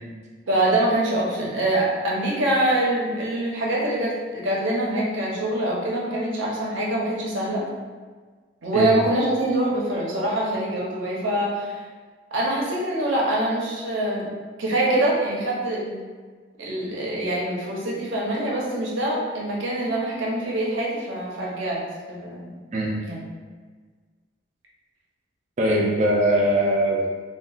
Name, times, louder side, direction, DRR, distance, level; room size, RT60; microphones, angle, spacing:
voice 1, 0.5-7.7 8.6-11.8 12.3-14.3 14.6-16.0 16.6-21.8 22.1-22.6 23.0-23.2 25.7-25.9, right 1 dB, 85° right, -4 dB, 0.7 m, -24 dB
voice 2, 25.6-27.1, right 1 dB, 40° right, -2 dB, 0.4 m, -21 dB
3.6 x 2.3 x 2.4 m, 1.5 s
head